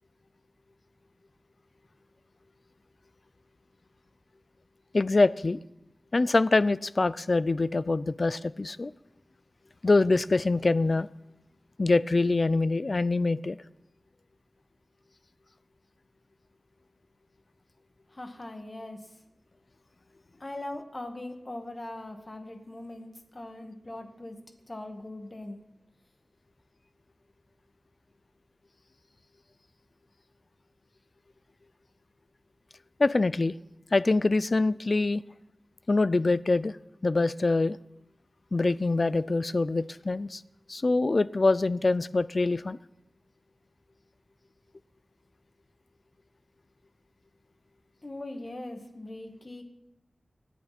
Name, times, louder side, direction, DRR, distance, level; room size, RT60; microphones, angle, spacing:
voice 1, 4.9-5.6 6.1-8.9 9.8-11.1 11.8-13.6 33.0-33.6 33.9-35.2 35.9-36.8 37.0-37.8 38.5-40.4 40.7-42.8, left 3 dB, 50° left, 17 dB, 0.5 m, -24 dB
voice 2, 18.1-19.1 20.4-24.4 24.7-25.6 48.0-49.6, left 1 dB, 35° left, 4 dB, 2.1 m, -40 dB
25.5 x 9.4 x 4.4 m, 0.87 s
wide cardioid pair, 80°, 0 cm